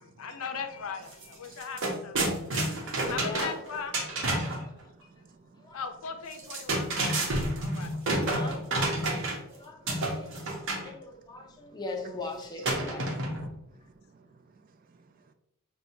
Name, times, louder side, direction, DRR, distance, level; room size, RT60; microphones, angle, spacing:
voice 1, 0.0-2.6 3.1-4.0 5.7-6.9 7.6-7.9, left 5 dB, 75° left, 0.5 m, -38 dB
sound 1, 1.1-1.2 1.5-4.6 6.3-9.5 9.9-10.9 12.6-13.5, right 1 dB, 65° right, 0.9 m, -29 dB
voice 2, 3.2-3.6 5.6-5.8 8.3-8.6 9.5-10.3 10.8-13.1, left 3 dB, 20° left, 0.5 m, -40 dB
voice 3, 4.4-5.7 7.3-8.1 9.3-9.6 11.4-11.5 12.0-12.2 12.8-12.9 13.9-14.3, right 4 dB, 40° right, 0.3 m, -56 dB
5.8 x 2.2 x 2.7 m
head